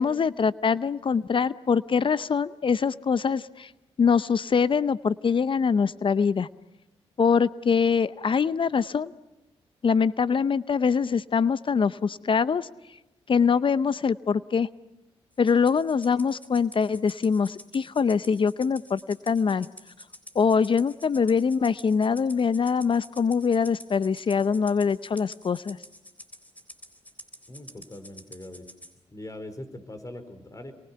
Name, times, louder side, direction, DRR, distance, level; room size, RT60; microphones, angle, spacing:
voice 1, 0.0-3.7 4.0-6.5 7.2-9.1 9.8-12.7 13.3-14.7 15.4-19.7 20.3-25.8, left 6 dB, 50° left, 17 dB, 0.7 m, -23 dB
Rattle (instrument), 15.4-28.9, left 1 dB, 15° left, 3.9 m, -48 dB
voice 2, 27.5-28.7 29.1-30.7, left 1 dB, 30° left, 9 dB, 4.7 m, -41 dB
27.5 x 23.5 x 5.8 m, 0.98 s
supercardioid pair, 50°, 11 cm